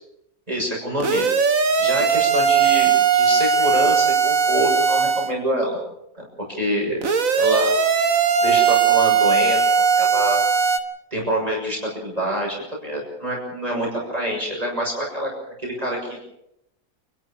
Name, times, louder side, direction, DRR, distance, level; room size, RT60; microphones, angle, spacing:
voice 1, 0.5-1.3 1.8-5.8 6.1-7.0 7.3-7.7 8.4-10.4 11.1-15.3 15.6-16.2, equal, 25° right, -2 dB, 7.0 m, -26 dB
sound 1, 1.0-5.3 7.0-10.8, right 6 dB, 60° right, 1.9 m, -18 dB
29.0 x 12.5 x 8.8 m, 0.80 s
omnidirectional pair, 1.6 m